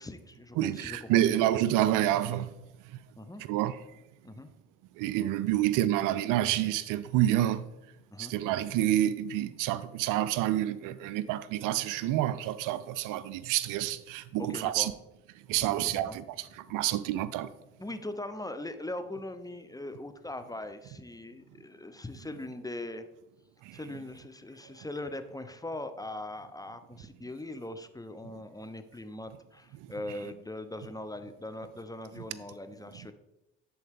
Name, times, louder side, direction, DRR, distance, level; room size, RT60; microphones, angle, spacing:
voice 1, 0.0-1.3 3.2-3.4 4.2-4.5 8.1-8.3 14.4-14.9 15.8-16.2 17.8-23.1 23.7-33.1, left 1 dB, 10° left, 0.7 m, -41 dB
voice 2, 0.6-2.5 3.4-3.8 5.0-7.6 8.2-14.9 15.5-17.5 23.7-23.8, right 13 dB, 70° right, 0.5 m, -28 dB
10.5 x 4.2 x 3.6 m
hypercardioid pair, 45°, 33 cm